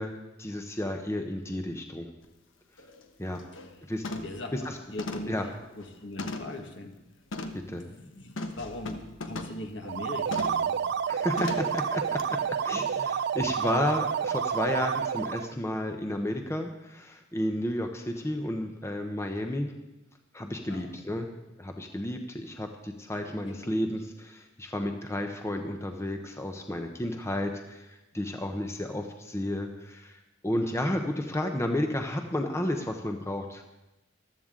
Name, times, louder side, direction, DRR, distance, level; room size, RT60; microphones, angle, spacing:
voice 1, 0.0-2.1 3.2-3.4 3.9-4.0 4.5-4.8 5.3-5.5 7.5-7.9 11.1-19.7 20.3-33.6, left 1 dB, 15° left, 4 dB, 0.8 m, -32 dB
sound 1, 2.2-2.3 2.8-3.0 3.4-3.7 4.0-4.4 5.0-6.6 7.3-7.7 8.4-9.6 10.3-10.7 11.4-11.8 12.2-12.3, left 2 dB, 90° left, 1.1 m, -37 dB
voice 2, 4.2-5.3 5.7-6.9 7.7-10.8 11.4-11.6 20.7-21.0 23.5-23.6, left 2 dB, 65° left, 3 dB, 1.7 m, -41 dB
sound 2, 9.8-15.5, right 7 dB, 60° right, 0.3 m, -29 dB
14.5 x 12.5 x 3.8 m, 0.96 s
head